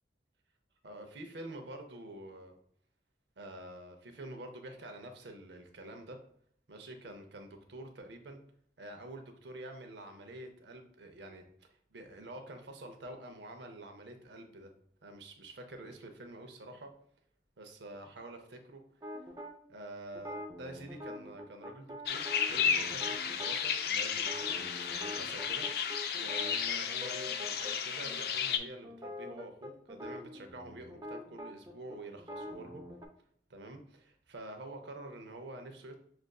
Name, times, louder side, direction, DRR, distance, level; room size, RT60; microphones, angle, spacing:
voice 1, 0.8-2.6 3.4-6.2 6.7-8.4 8.8-14.7 15.0-16.9 17.6-18.8 19.7-25.6 26.2-32.8 33.5-36.0, right 1 dB, 80° right, 5 dB, 0.7 m, -47 dB
sound 1, 19.0-19.5 20.1-23.6 24.2-27.7 28.0-28.2 28.5-33.1, left 1 dB, 20° right, 0.4 m, -45 dB
sound 2, 22.1-28.6, left 7 dB, 55° left, 0.3 m, -33 dB
6.2 x 2.5 x 2.3 m, 0.64 s
head